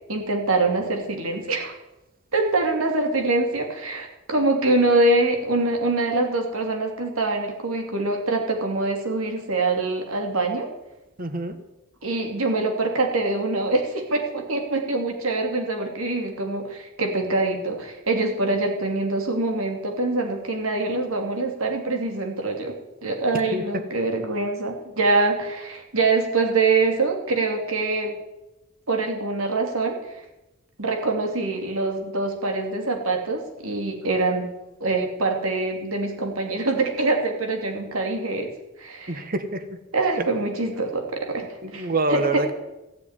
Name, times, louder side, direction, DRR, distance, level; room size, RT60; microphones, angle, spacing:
voice 1, 0.1-1.7 2.3-10.7 12.0-28.2 28.9-30.2 30.8-34.5 34.8-38.5 38.8-39.2 39.9-41.4 41.7-42.5, right 3 dB, 85° right, 3 dB, 2.7 m, -24 dB
voice 2, 11.2-11.6 23.5-23.6 39.1-39.6 41.6-42.5, right 2 dB, 45° right, 10 dB, 1.3 m, -26 dB
15.0 x 7.0 x 9.6 m, 0.98 s
head